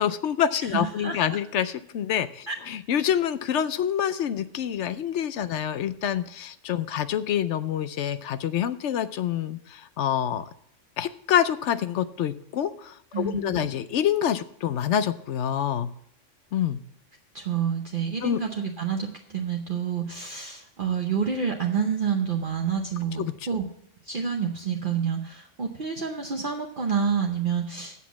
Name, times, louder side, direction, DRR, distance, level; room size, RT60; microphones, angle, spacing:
voice 1, 0.0-10.5 11.0-15.9 16.5-16.8 18.2-18.4 23.2-23.3, left 9 dB, 70° left, 13 dB, 0.9 m, -27 dB
voice 2, 0.7-1.2 2.5-2.6 13.1-13.7 17.3-23.6 24.1-28.0, right 6 dB, 45° right, 2 dB, 1.0 m, -28 dB
8.2 x 7.3 x 7.2 m, 0.70 s
omnidirectional pair, 1.3 m